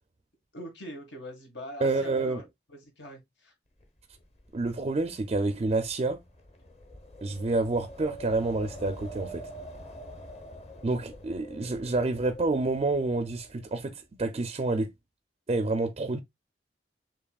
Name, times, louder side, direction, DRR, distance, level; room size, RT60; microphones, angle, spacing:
voice 1, 0.5-3.5, equal, 80° left, 1.7 m, -43 dB
voice 2, 1.8-2.4 4.5-6.2 7.2-9.4 10.8-14.9 15.5-16.2, right 3 dB, 35° right, 0.4 m, -28 dB
Wind, 3.8-13.9, equal, 35° left, 0.9 m, -46 dB
6.8 x 2.9 x 2.3 m
head